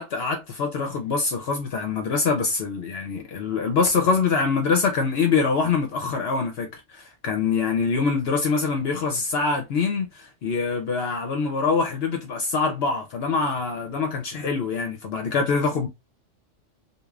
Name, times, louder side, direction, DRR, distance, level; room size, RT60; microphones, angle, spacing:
voice 1, 0.0-15.9, left 4 dB, 65° left, 0.8 m, -24 dB
2.4 x 2.3 x 3.1 m
omnidirectional pair, 1.2 m